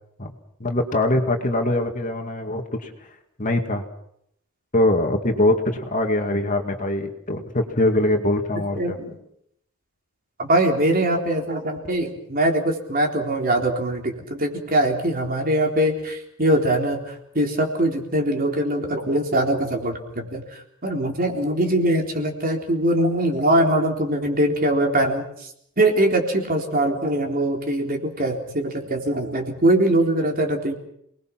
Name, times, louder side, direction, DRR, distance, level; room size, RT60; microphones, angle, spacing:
voice 1, 0.6-2.9 3.4-3.8 4.7-9.0, left 1 dB, 35° left, 4 dB, 2.3 m, -22 dB
voice 2, 8.8-9.1 10.4-25.5 25.8-30.7, right 1 dB, 40° right, 2 dB, 3.8 m, -22 dB
28.5 x 20.5 x 6.1 m, 0.73 s
head